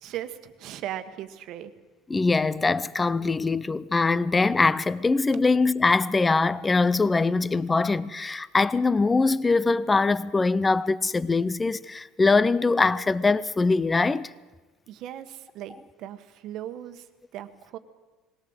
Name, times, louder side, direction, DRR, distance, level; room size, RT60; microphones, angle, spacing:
voice 1, 0.0-1.7 14.9-17.0 17.3-17.8, right 11 dB, 55° right, 1.4 m, -38 dB
voice 2, 2.1-14.3, left 3 dB, 15° left, 0.6 m, -22 dB
20.5 x 17.5 x 8.0 m
cardioid pair, 130°, 0 cm